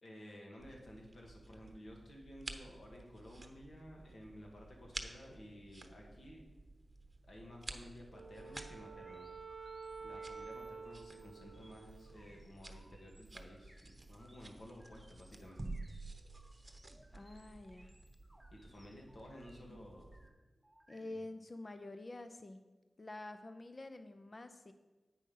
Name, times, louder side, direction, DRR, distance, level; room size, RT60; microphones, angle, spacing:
voice 1, 0.0-6.4 7.3-9.6 10.0-15.6 18.5-20.1, left 1 dB, 75° left, -1 dB, 1.9 m, -54 dB
sound 1, 0.6-20.3, right 2 dB, 35° right, 0.8 m, -52 dB
Wind instrument woodwind instrument, 8.1-12.6, right 5 dB, 60° right, 0.4 m, -50 dB
sound 2, 8.4-21.3, equal, 5° right, 0.9 m, -66 dB
voice 2, 17.1-17.9 20.9-22.6 23.0-24.7, left 2 dB, 45° left, 9 dB, 0.6 m, -48 dB
8.5 x 5.4 x 5.5 m, 1.2 s
cardioid pair, 50°, 0 cm